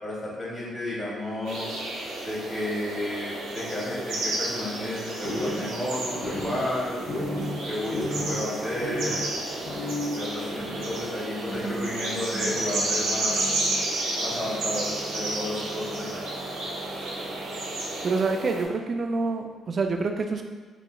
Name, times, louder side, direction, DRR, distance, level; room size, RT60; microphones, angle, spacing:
voice 1, 0.0-1.8 2.2-7.0 7.7-9.2 10.0-13.4 14.2-16.2, left 1 dB, 20° left, -7 dB, 1.4 m, -32 dB
sound 1, 1.4-18.6, right 2 dB, 85° right, 0.7 m, -32 dB
sound 2, 5.2-18.2, equal, 40° left, 0.6 m, -36 dB
voice 2, 18.0-20.4, right 3 dB, 45° right, 5 dB, 0.3 m, -27 dB
3.2 x 3.0 x 2.2 m, 1.4 s
cardioid pair, 90°, 0 cm